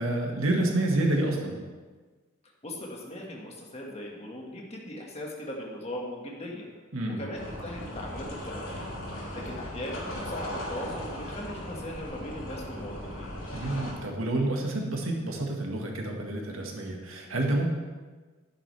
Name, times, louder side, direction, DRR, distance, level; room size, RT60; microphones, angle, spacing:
voice 1, 0.0-1.6 6.9-7.2 13.5-17.7, right 1 dB, 85° right, 0 dB, 1.7 m, -28 dB
voice 2, 2.6-6.7 7.1-8.8 9.1-13.3, left 1 dB, 30° left, -2 dB, 1.8 m, -39 dB
sound 1, 7.3-13.9, left 1 dB, 80° left, 3.1 m, -37 dB
11.0 x 10.0 x 3.4 m, 1.4 s
head